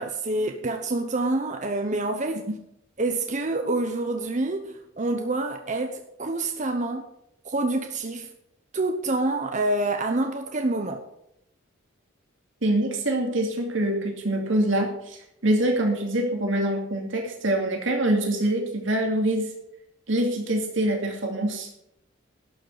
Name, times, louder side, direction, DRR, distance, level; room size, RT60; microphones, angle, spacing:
voice 1, 0.0-2.5 3.0-7.1 7.4-8.3 8.7-11.0, right 2 dB, 35° right, 5 dB, 0.9 m, -27 dB
voice 2, 12.6-15.2 15.4-19.5 20.1-21.7, right 1 dB, 65° right, 1 dB, 2.6 m, -25 dB
12.0 x 6.6 x 8.1 m, 0.80 s
head